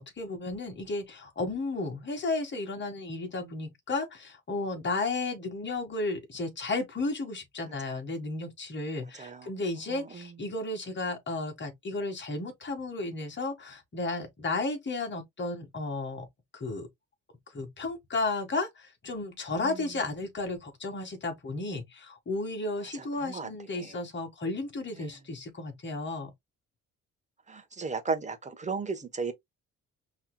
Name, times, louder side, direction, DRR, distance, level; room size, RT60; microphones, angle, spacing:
voice 1, 0.0-16.3 16.5-16.9 17.5-26.3, left 3 dB, 40° left, 2.0 m, -33 dB
voice 2, 9.2-9.5 9.9-10.3 19.6-19.9 23.2-23.9 25.0-25.2 27.5-29.3, right 4 dB, 25° right, 1.1 m, -36 dB
5.5 x 3.2 x 2.3 m
cardioid pair, 90°, 30 cm